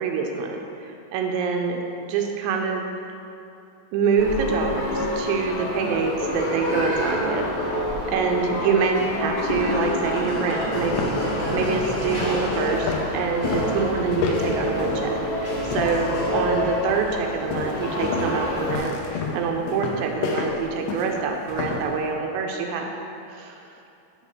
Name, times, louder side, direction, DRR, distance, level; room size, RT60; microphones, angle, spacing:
voice 1, 0.0-1.8 2.1-2.9 3.9-22.9 23.3-23.6, right 5 dB, 80° right, 2 dB, 2.7 m, -26 dB
sound 1, 4.2-18.8, left 1 dB, 60° left, 1.4 m, -27 dB
sound 2, 10.1-10.2 10.7-16.2 16.5-16.9 17.5-21.9, left 4 dB, 80° left, 2.7 m, -30 dB
8.1 x 3.4 x 6.3 m, 2.7 s
omnidirectional pair, 5.2 m